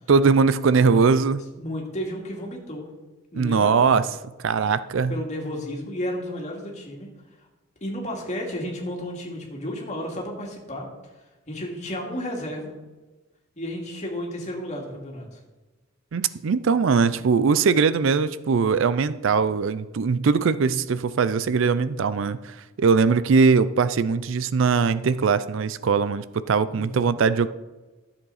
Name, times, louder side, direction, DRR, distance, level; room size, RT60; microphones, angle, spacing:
voice 1, 0.1-1.4 3.3-4.0 4.4-5.1 16.1-27.5, right 5 dB, 70° right, 15 dB, 0.4 m, -21 dB
voice 2, 1.6-2.9 3.3-4.0 5.1-7.1 7.8-10.9 11.5-12.7 13.6-15.4 26.7-27.2, equal, 35° left, -1 dB, 2.4 m, -32 dB
13.0 x 7.2 x 4.1 m, 1.2 s
head